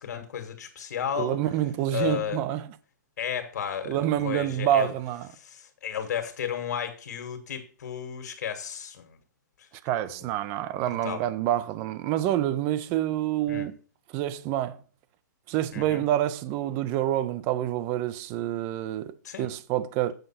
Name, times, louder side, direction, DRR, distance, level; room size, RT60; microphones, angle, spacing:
voice 1, 0.0-1.4 1.9-2.5 3.2-4.9 5.3-9.2 9.6-9.7 10.2-10.3 10.9-11.2 13.5-13.7 15.7-16.0 19.2-19.5, left 8 dB, 60° left, 1.9 m, -33 dB
voice 2, 1.2-2.7 3.9-5.3 9.8-13.7 14.1-14.8 15.5-20.1, right 12 dB, 20° right, 0.5 m, -27 dB
8.0 x 5.4 x 5.7 m
hypercardioid pair, 165°, 10 cm